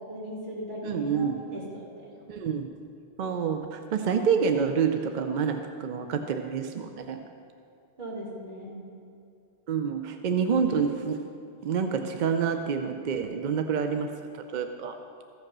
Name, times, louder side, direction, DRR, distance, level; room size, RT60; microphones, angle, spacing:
voice 1, 0.1-1.8 2.1-2.3 8.0-8.8, equal, 40° right, -7 dB, 2.8 m, -38 dB
voice 2, 0.8-1.4 2.3-2.7 3.2-7.2 9.7-11.2 11.6-14.1 14.5-15.0, right 6 dB, 55° right, 6 dB, 0.5 m, -27 dB
14.0 x 5.3 x 6.0 m, 2.5 s
omnidirectional pair, 1.2 m